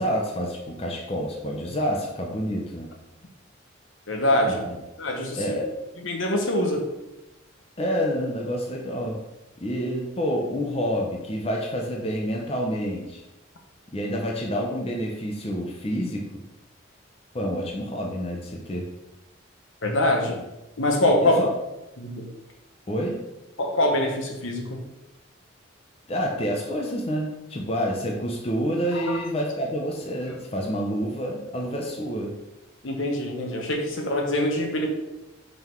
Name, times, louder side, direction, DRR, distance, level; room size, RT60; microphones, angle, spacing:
voice 1, 0.0-2.9 4.4-4.7 5.4-5.7 7.8-9.2 9.6-13.2 13.9-16.3 17.3-18.9 21.2-21.5 22.9-23.2 26.1-32.3, equal, 30° left, 0 dB, 0.7 m, -28 dB
voice 2, 4.1-4.6 5.0-5.5 6.0-6.8 19.8-20.4 20.8-21.4 22.0-22.3 23.6-24.8 29.0-29.2 32.8-34.9, left 1 dB, 75° left, 2 dB, 1.1 m, -24 dB
5.5 x 3.9 x 4.6 m, 0.97 s
head